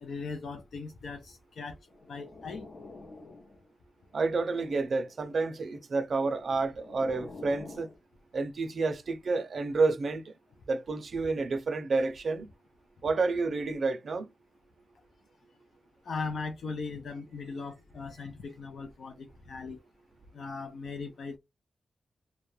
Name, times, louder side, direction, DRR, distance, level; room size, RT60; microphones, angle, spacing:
voice 1, 0.0-1.8 2.1-2.7 16.0-19.8 20.3-21.4, left 4 dB, 80° left, 0.4 m, -39 dB
sound 1, 1.9-3.7 4.1-5.2 6.1-8.0, left 2 dB, 60° left, 0.7 m, -48 dB
voice 2, 4.1-7.9 8.3-10.2 10.7-12.5 13.0-14.3, right 3 dB, 55° right, 0.4 m, -29 dB
2.3 x 2.0 x 2.9 m
wide cardioid pair, 145°, 0 cm